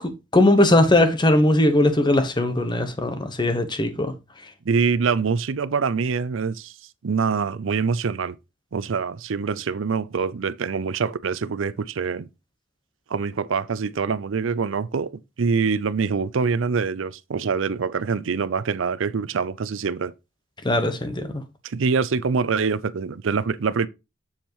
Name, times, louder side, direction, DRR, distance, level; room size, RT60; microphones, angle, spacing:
voice 1, 0.0-4.1 20.6-21.4, left 1 dB, 20° left, 1.0 m, -19 dB
voice 2, 4.7-6.7 7.0-8.3 8.7-12.3 13.1-15.1 15.4-20.1 21.6-23.9, right 5 dB, 75° right, 0.5 m, -24 dB
7.3 x 7.2 x 3.0 m
head